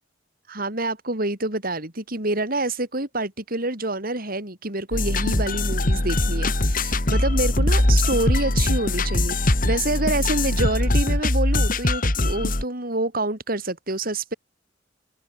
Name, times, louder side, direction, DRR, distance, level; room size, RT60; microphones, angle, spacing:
voice 1, 0.5-14.3, right 2 dB, 50° right, 7.0 m, -27 dB
sound 1, 4.9-12.6, left 1 dB, 50° left, 2.6 m, -22 dB
head